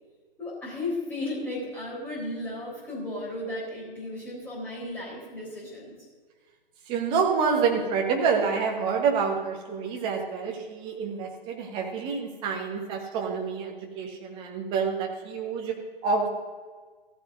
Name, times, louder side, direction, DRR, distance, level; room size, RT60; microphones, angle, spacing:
voice 1, 0.4-5.9, left 2 dB, 5° left, -8 dB, 3.8 m, -34 dB
voice 2, 6.9-15.8 16.0-16.3, right 5 dB, 15° right, 1 dB, 1.3 m, -27 dB
15.0 x 15.0 x 2.7 m, 1.5 s
figure-of-eight pair, 135°, 31 cm